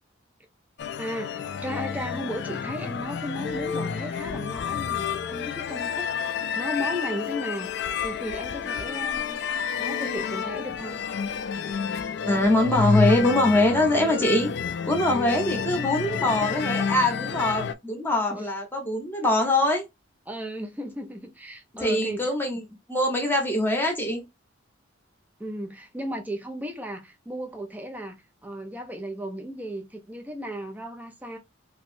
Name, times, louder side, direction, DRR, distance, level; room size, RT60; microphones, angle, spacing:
sound 1, 0.8-17.7, left 6 dB, 60° left, 0.3 m, -29 dB
voice 1, 1.0-11.0 18.3-18.4 20.3-22.3 25.4-31.4, equal, 10° right, 0.5 m, -35 dB
voice 2, 12.3-14.5 14.9-19.8 21.8-22.6 22.9-24.2, left 1 dB, 10° left, 0.9 m, -23 dB
3.0 x 2.6 x 2.6 m
head